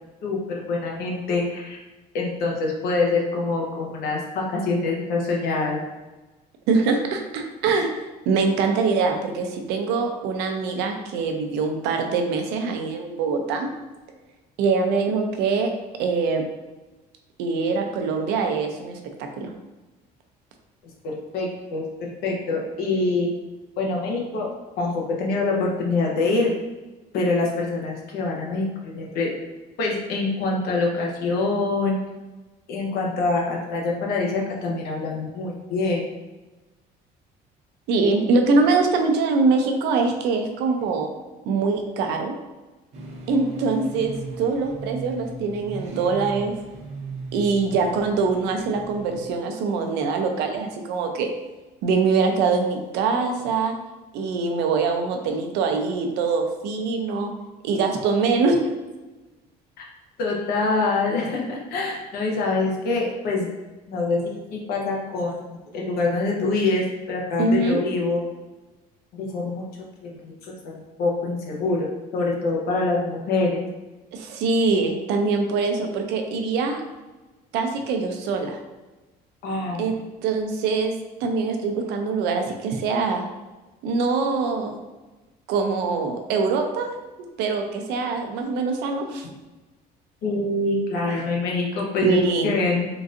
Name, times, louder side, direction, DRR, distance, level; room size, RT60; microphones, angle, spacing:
voice 1, 0.2-1.8 2.1-5.8 21.0-23.3 23.8-26.5 27.1-29.3 29.8-32.0 32.7-36.0 60.2-63.5 63.9-65.4 65.7-68.2 69.1-69.7 70.0-70.7 71.0-71.9 72.1-73.7 79.4-79.9 90.2-92.2 92.4-92.9, left 3 dB, 65° left, -2 dB, 0.9 m, -25 dB
voice 2, 6.7-7.9 8.3-13.7 14.6-15.7 16.0-16.4 17.4-19.0 19.4-19.5 37.9-41.1 41.5-42.3 43.3-46.5 47.3-51.3 51.8-53.7 54.1-57.3 57.6-58.6 67.4-67.8 74.1-76.8 77.5-78.6 79.8-79.9 80.2-80.9 81.2-83.2 83.8-84.8 85.5-86.9 87.4-89.3 91.1-91.2 92.0-92.5, right 4 dB, 90° right, 4 dB, 0.5 m, -23 dB
sound 1, 42.9-49.3, right 3 dB, 40° right, 0.6 m, -38 dB
3.8 x 2.5 x 2.5 m, 1.2 s
cardioid pair, 155°, 17 cm